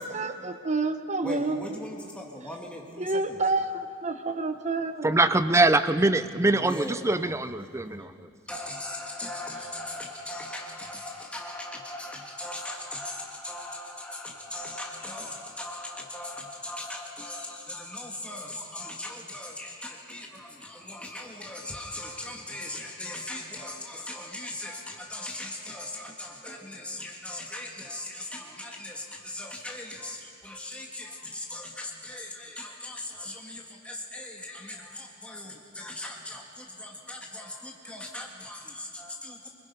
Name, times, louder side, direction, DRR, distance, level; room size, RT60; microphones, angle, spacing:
voice 1, 0.0-1.8 3.0-5.2, right 3 dB, 35° right, 7 dB, 1.1 m, -29 dB
voice 2, 1.2-3.4 6.7-7.1 7.6-8.0 8.5-39.5, left 1 dB, 5° left, -1 dB, 1.7 m, -39 dB
voice 3, 5.0-8.3, right 2 dB, 15° right, 10 dB, 0.6 m, -23 dB
25.0 x 21.5 x 5.4 m, 2.3 s
head